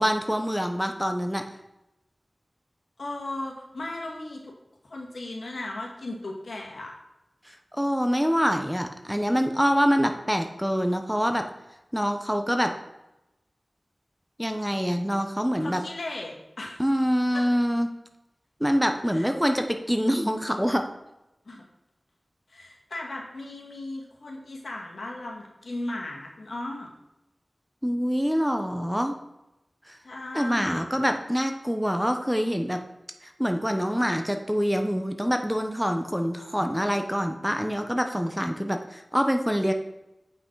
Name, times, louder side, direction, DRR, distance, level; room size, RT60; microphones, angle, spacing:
voice 1, 0.0-1.4 7.5-11.5 11.9-12.7 14.4-15.8 16.8-17.9 18.6-20.9 27.8-29.2 29.9-30.0 30.3-32.8 33.2-39.7, equal, 5° right, 6 dB, 0.9 m, -25 dB
voice 2, 3.0-4.5 4.8-6.9 15.6-16.8 17.3-17.4 19.1-19.3 21.5-21.6 22.5-26.9 30.0-30.9, left 2 dB, 85° left, -1 dB, 2.0 m, -36 dB
8.1 x 5.8 x 4.7 m, 0.93 s
wide cardioid pair, 50°, 0 cm